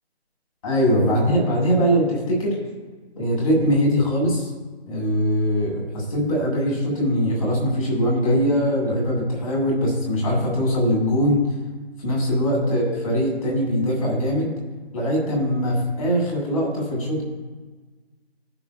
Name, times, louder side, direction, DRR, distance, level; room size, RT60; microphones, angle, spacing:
voice 1, 0.6-2.6 3.2-4.5 4.9-11.4 12.0-14.5 14.9-17.2, equal, 30° left, -1 dB, 2.3 m, -21 dB
18.0 x 5.9 x 2.3 m, 1.3 s
figure-of-eight pair, 160°, 33 cm